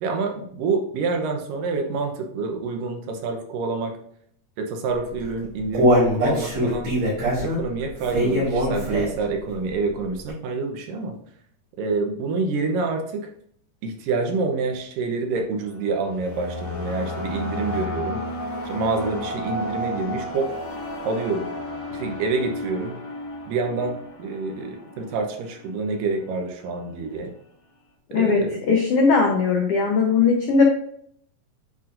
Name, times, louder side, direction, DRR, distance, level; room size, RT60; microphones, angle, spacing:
voice 1, 0.0-4.0 4.6-6.9 7.4-11.2 11.8-13.3 13.8-18.2 18.6-20.5 21.0-21.5 21.9-23.0 23.5-27.3 28.1-28.6, right 3 dB, 85° right, 3 dB, 2.6 m, -27 dB
Human voice, 5.1-9.3 9.7-9.8 10.3-10.4, equal, 55° right, 3.9 m, -21 dB
sound 1, 15.6-25.9, left 1 dB, 65° left, 1.2 m, -33 dB
voice 2, 28.7-30.6, left 5 dB, 85° left, 1 dB, 1.3 m, -19 dB
10.0 x 4.3 x 2.6 m, 0.66 s
omnidirectional pair, 3.8 m